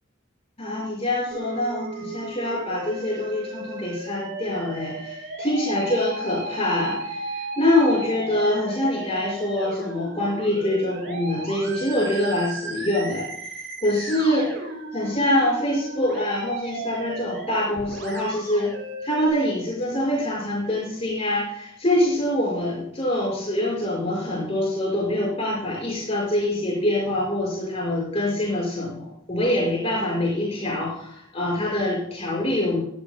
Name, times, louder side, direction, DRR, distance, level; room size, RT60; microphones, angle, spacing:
voice 1, 0.6-14.6 14.9-18.7 19.0-32.8, left 1 dB, 30° left, -5 dB, 5.5 m, -25 dB
Musical instrument, 1.3-19.3, right 2 dB, 75° right, 5.9 m, -35 dB
22.0 x 14.0 x 2.2 m, 0.73 s
head